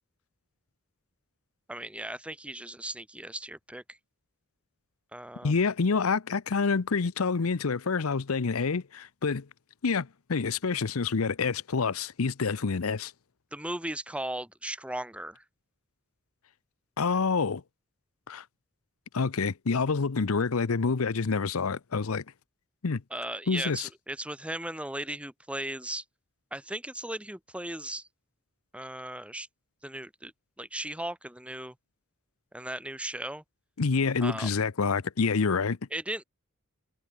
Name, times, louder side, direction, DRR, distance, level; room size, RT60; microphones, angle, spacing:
voice 1, 1.7-3.8 5.1-5.5 13.5-15.4 23.1-26.0 26.5-28.1 28.7-29.5 29.8-30.3 30.6-31.7 32.5-33.4 34.2-34.5 35.9-36.2, right 1 dB, 5° right, 1.8 m, -37 dB
voice 2, 5.4-9.5 9.8-13.1 17.0-17.6 18.3-18.4 19.1-22.2 22.8-23.0 23.5-23.9 33.8-35.8, left 4 dB, 75° left, 0.7 m, -27 dB
head